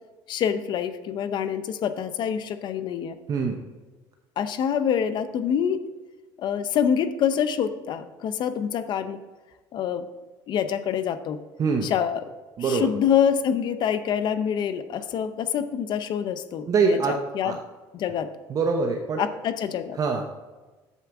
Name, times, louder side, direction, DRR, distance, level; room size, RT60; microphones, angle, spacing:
voice 1, 0.3-3.2 4.4-5.8 6.4-9.2 9.7-10.1 10.5-11.4 11.8-12.3 12.6-17.5 17.9-18.3 19.2-20.0, left 8 dB, 55° left, 11 dB, 0.6 m, -26 dB
voice 2, 12.6-12.9 16.7-17.2 17.4-17.6 18.5-19.2 20.0-20.2, right 4 dB, 40° right, 3 dB, 0.8 m, -23 dB
8.2 x 7.2 x 3.5 m, 1.2 s
cardioid pair, 110°, 9 cm